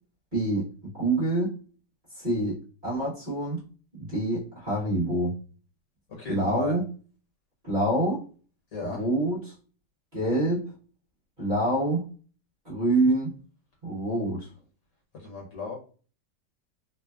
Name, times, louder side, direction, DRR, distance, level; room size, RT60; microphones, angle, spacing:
voice 1, 0.3-0.7 1.0-1.6 2.1-3.6 3.9-5.4 6.3-6.9 7.6-8.2 8.8-9.5 10.1-10.6 11.4-12.1 12.6-13.3 13.8-14.5, right 1 dB, 30° right, -7 dB, 1.1 m, -26 dB
voice 2, 6.1-6.7 8.7-9.0 15.1-15.8, left 3 dB, 60° left, -1 dB, 1.3 m, -35 dB
3.2 x 2.0 x 2.3 m, 0.39 s
omnidirectional pair, 1.9 m